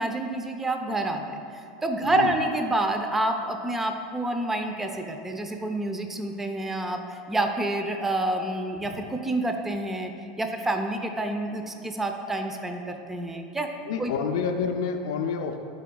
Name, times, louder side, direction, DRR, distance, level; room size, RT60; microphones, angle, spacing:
voice 1, 0.0-1.4 1.8-10.1 10.4-13.7 14.0-14.1, right 2 dB, 10° right, 5 dB, 0.6 m, -28 dB
voice 2, 2.0-2.4 8.8-9.0 13.9-15.6, left 6 dB, 80° left, 4 dB, 0.5 m, -28 dB
11.5 x 4.6 x 2.3 m, 2.5 s
supercardioid pair, 110°, 3 cm